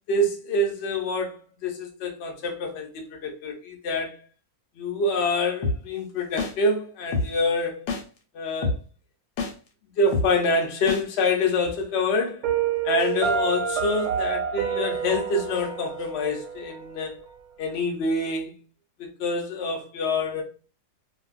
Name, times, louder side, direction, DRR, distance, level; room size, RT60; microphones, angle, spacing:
voice 1, 0.1-1.3 1.6-4.2 4.8-7.8 8.3-8.8 10.0-12.4 12.8-17.2 17.6-18.5 19.0-20.4, left 2 dB, 60° left, 0.7 m, -26 dB
sound 1, 5.6-5.8 6.4-6.5 7.1-7.3 7.9-8.0 8.6-8.8 9.4-9.5 10.1-10.3 10.9-11.0, left 3 dB, 85° left, 1.1 m, -25 dB
Piano, 12.4-17.4, right 7 dB, 85° right, 1.2 m, -28 dB
2.5 x 2.2 x 2.3 m
omnidirectional pair, 1.7 m